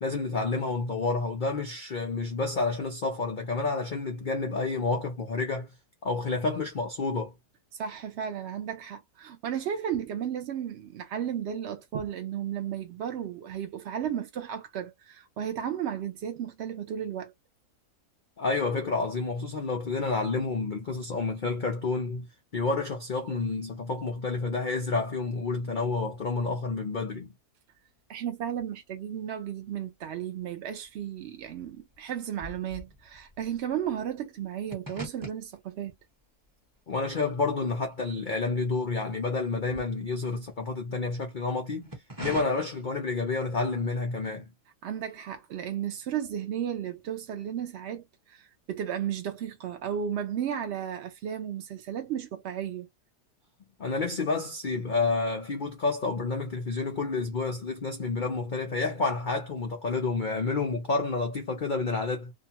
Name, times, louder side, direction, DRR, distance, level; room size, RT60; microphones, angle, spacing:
voice 1, 0.0-5.7 6.0-7.3 18.4-22.3 22.5-27.3 36.9-41.9 42.2-44.5 53.8-62.3, left 3 dB, 80° left, 0.4 m, -29 dB
voice 2, 7.7-17.3 28.1-35.9 44.8-52.9, right 9 dB, 75° right, 0.6 m, -34 dB
sound 1, 29.6-30.4 30.6-39.0 39.3-41.0 41.6-42.4, right 1 dB, 20° right, 0.6 m, -45 dB
2.7 x 2.3 x 2.8 m
omnidirectional pair, 1.7 m